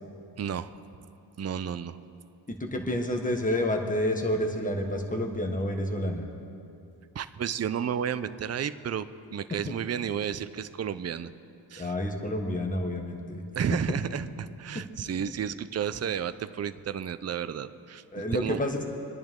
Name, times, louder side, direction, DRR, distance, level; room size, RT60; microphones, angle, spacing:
voice 1, 0.4-0.7 1.4-2.0 7.1-9.1 9.3-11.3 11.7-11.9 13.6-18.6, right 8 dB, 35° right, 12 dB, 0.6 m, -32 dB
voice 2, 2.5-6.2 11.8-13.4 13.7-13.8 15.2-15.3 18.1-18.8, left 1 dB, 20° left, 3 dB, 1.5 m, -29 dB
24.5 x 10.5 x 3.7 m, 2.6 s
cardioid pair, 70°, 45 cm